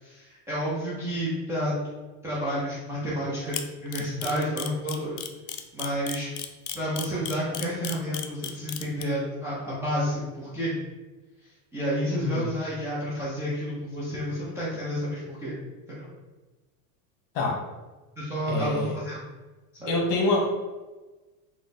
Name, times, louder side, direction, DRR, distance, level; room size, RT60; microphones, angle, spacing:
voice 1, 0.0-1.8 2.2-5.2 5.7-6.3 6.7-10.7 11.7-15.5 15.9-16.1 18.2-19.3 19.8-19.9, equal, 5° right, -10 dB, 0.3 m, -30 dB
Camera, 3.5-9.0, left 11 dB, 75° left, 0.5 m, -33 dB
voice 2, 12.1-12.5 17.3-17.6 18.5-19.0 19.9-20.5, left 2 dB, 60° left, -1 dB, 1.2 m, -26 dB
3.2 x 2.0 x 4.0 m, 1.2 s
supercardioid pair, 140°, 43 cm